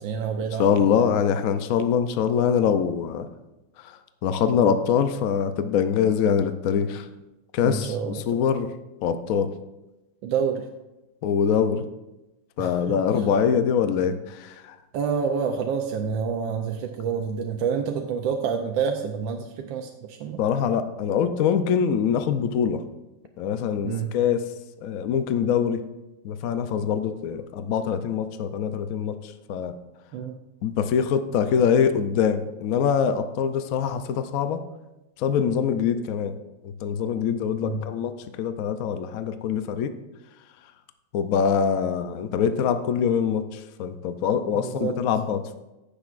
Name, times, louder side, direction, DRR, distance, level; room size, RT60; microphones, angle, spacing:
voice 1, 0.0-0.9 7.6-8.2 10.2-10.6 12.6-12.7 14.9-20.4 23.8-24.1 26.8-26.9 30.1-30.4 37.6-37.9 44.6-45.0, right 6 dB, 80° right, 3 dB, 1.3 m, -28 dB
voice 2, 0.6-3.3 3.8-7.1 7.5-8.7 9.0-9.5 11.2-11.8 12.6-14.7 20.4-22.8 23.4-24.4 24.8-25.9 26.2-29.7 30.6-34.6 35.2-36.4 36.6-39.9 41.1-45.6, left 7 dB, 80° left, 9 dB, 0.7 m, -24 dB
15.0 x 6.8 x 2.5 m, 1.0 s
omnidirectional pair, 2.1 m